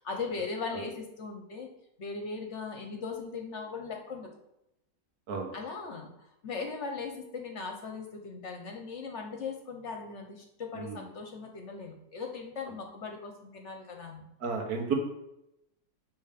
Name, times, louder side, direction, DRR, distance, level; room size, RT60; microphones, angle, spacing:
voice 1, 0.0-1.7 2.0-4.3 5.5-14.3, left 4 dB, 55° left, 3 dB, 1.0 m, -39 dB
voice 2, 14.4-14.9, right 5 dB, 70° right, 2 dB, 1.6 m, -31 dB
6.9 x 3.4 x 5.0 m, 0.85 s
omnidirectional pair, 1.7 m